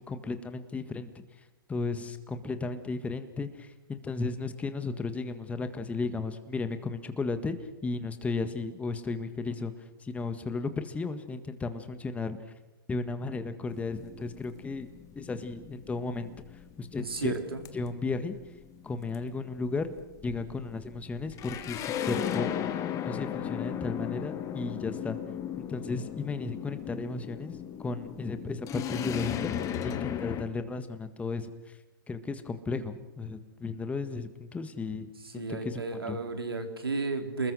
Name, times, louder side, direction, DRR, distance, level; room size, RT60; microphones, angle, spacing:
voice 1, 0.1-1.1 1.7-7.5 7.8-9.7 10.0-12.4 12.9-14.9 15.1-16.3 16.8-17.3 17.7-18.4 18.8-19.9 20.2-22.6 22.9-25.2 25.6-29.5 29.8-31.8 32.1-36.2, left 3 dB, 10° left, 10 dB, 1.7 m, -34 dB
sound 1, 13.7-30.4, left 9 dB, 25° left, 1.7 m, -36 dB
voice 2, 17.0-17.6 35.2-37.5, right 3 dB, 85° right, 5 dB, 3.9 m, -33 dB
29.5 x 20.5 x 6.4 m, 1.0 s
hypercardioid pair, 115°, 12 cm